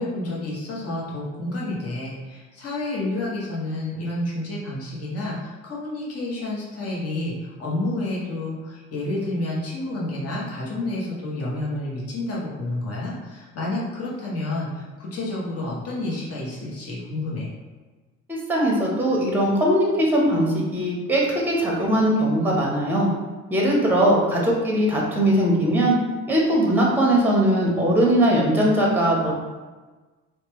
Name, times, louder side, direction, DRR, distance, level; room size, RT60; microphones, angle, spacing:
voice 1, 0.0-17.5, left 2 dB, 40° left, -5 dB, 1.0 m, -29 dB
voice 2, 18.3-23.1 23.5-26.0 26.3-29.3, right 1 dB, 5° right, -3 dB, 0.8 m, -20 dB
2.9 x 2.2 x 3.0 m, 1.3 s
supercardioid pair, 70°, 37 cm